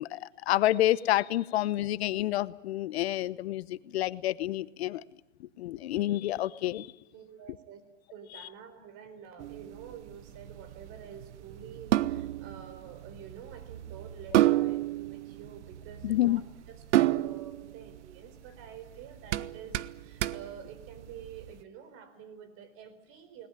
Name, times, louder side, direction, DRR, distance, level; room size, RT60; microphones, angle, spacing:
voice 1, 0.0-5.0 5.4-6.9 16.0-16.4, left 14 dB, 60° left, 18 dB, 1.0 m, -29 dB
voice 2, 7.1-7.8 8.1-16.4 16.7-23.5, right 8 dB, 35° right, 11 dB, 4.3 m, -48 dB
sound 1, 9.4-21.5, right 14 dB, 65° right, 0.9 m, -31 dB
20.5 x 19.0 x 9.9 m, 0.99 s
hypercardioid pair, 125°, 37 cm